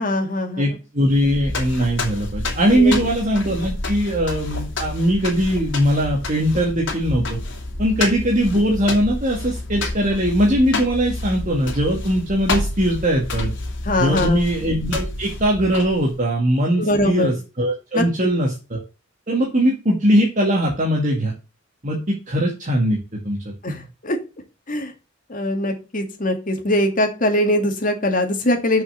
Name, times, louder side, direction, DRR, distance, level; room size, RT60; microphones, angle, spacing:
voice 1, 0.0-0.8 2.7-3.0 13.8-14.4 16.8-17.3 17.9-18.0 23.6-24.2 24.7-24.9 25.3-28.8, left 1 dB, 45° left, 4 dB, 2.2 m, -22 dB
voice 2, 0.6-7.4 7.8-13.5 14.0-18.8 19.3-21.3 21.8-23.0 23.2-23.4, equal, 40° right, -2 dB, 2.1 m, -20 dB
sound 1, 1.0-16.2, left 2 dB, 70° left, 3.0 m, -29 dB
7.1 x 5.6 x 6.5 m, 0.31 s
head